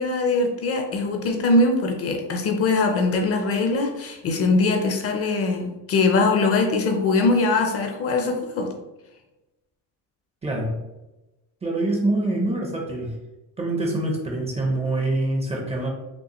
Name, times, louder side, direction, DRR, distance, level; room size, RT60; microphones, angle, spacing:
voice 1, 0.0-8.7, left 3 dB, 35° left, 4 dB, 0.5 m, -22 dB
voice 2, 10.4-10.8 11.6-13.1 13.6-15.9, right 2 dB, 15° right, 0 dB, 0.5 m, -25 dB
5.3 x 2.7 x 2.9 m, 1.0 s
cardioid pair, 165°, 41 cm